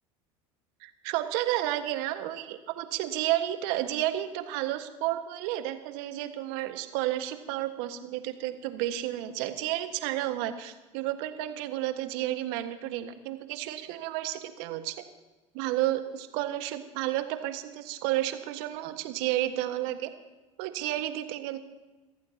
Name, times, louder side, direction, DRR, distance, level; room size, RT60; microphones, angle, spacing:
voice 1, 0.8-14.9 15.5-20.1 20.6-21.6, right 14 dB, 65° right, 8 dB, 1.6 m, -31 dB
28.5 x 14.5 x 2.9 m, 1.2 s
hypercardioid pair, 75°, 17 cm